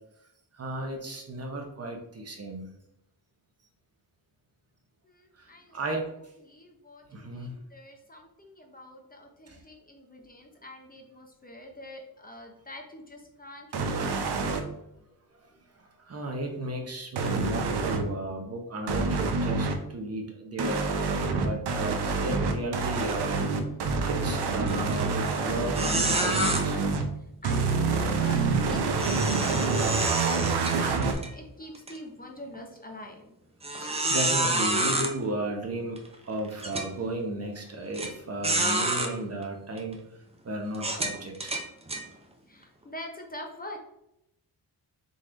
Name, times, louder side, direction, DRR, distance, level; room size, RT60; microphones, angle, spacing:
voice 1, 0.5-2.7 5.4-6.1 7.1-7.6 9.5-9.6 15.8-23.4 24.0-26.8 33.8-40.0 40.4-41.5, right 1 dB, 40° right, 2 dB, 0.9 m, -34 dB
voice 2, 5.0-5.8 6.4-14.2 27.4-31.0 31.3-33.3 42.5-43.8, left 1 dB, 25° left, 2 dB, 0.7 m, -45 dB
sound 1, 13.7-14.6 17.2-18.1 18.9-19.8 20.6-27.1 27.4-31.1, right 4 dB, 80° right, 0.7 m, -27 dB
sound 2, 24.7-24.9 25.3-25.4 25.7-26.6 29.0-31.3 31.7-31.9 32.5-32.6 33.6-35.1 36.0-36.1 36.6-36.9 37.9-38.1 38.4-39.1 39.8-39.9 40.7-42.0, right 1 dB, 15° right, 0.6 m, -28 dB
4.0 x 3.1 x 3.8 m, 0.82 s
cardioid pair, 105°, 39 cm